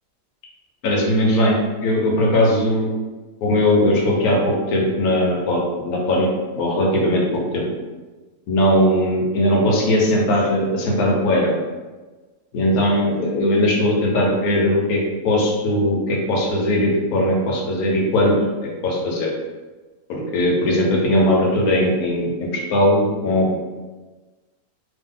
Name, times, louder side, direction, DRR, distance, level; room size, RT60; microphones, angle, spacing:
voice 1, 0.8-1.6 1.8-2.9 3.4-6.3 6.6-7.7 8.5-11.5 12.5-18.4 18.6-19.3 20.1-23.6, left 1 dB, 75° left, -1 dB, 1.2 m, -19 dB
2.8 x 2.2 x 3.7 m, 1.3 s
omnidirectional pair, 1.6 m